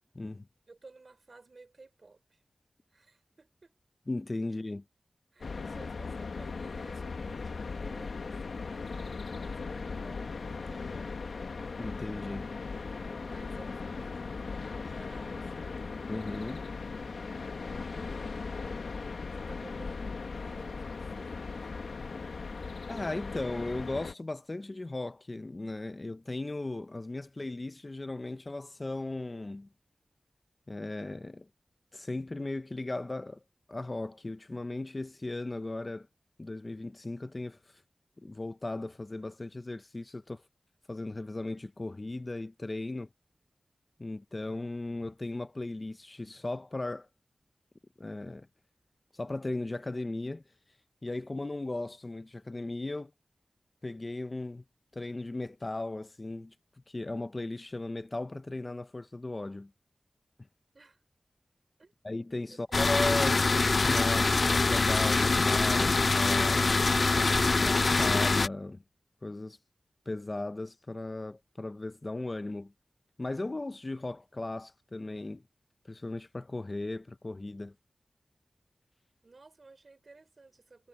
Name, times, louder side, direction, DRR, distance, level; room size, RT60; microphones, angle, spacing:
voice 1, 0.1-0.5 4.1-4.8 11.8-12.5 16.1-16.6 22.9-29.7 30.7-31.5 31.9-33.4 33.7-36.1 36.4-37.8 38.2-40.4 40.9-43.1 44.0-47.1 48.0-48.5 49.1-50.4 51.0-53.1 53.8-54.6 54.9-56.5 56.9-59.7 62.0-68.8 69.2-69.6 70.1-72.7 73.2-75.4 75.8-77.7, left 2 dB, 30° left, 0.7 m, -37 dB
voice 2, 0.7-2.4 2.9-3.7 4.6-4.7 5.3-11.1 13.2-15.8 17.9-18.8 19.3-21.6 60.7-61.0 61.8-61.9 62.5-62.6 79.2-80.9, right 3 dB, 50° right, 5.0 m, -55 dB
sound 1, 5.4-24.1, left 4 dB, 85° left, 1.7 m, -38 dB
sound 2, 62.7-68.5, left 3 dB, 50° left, 0.3 m, -24 dB
wide cardioid pair, 105°, 0 cm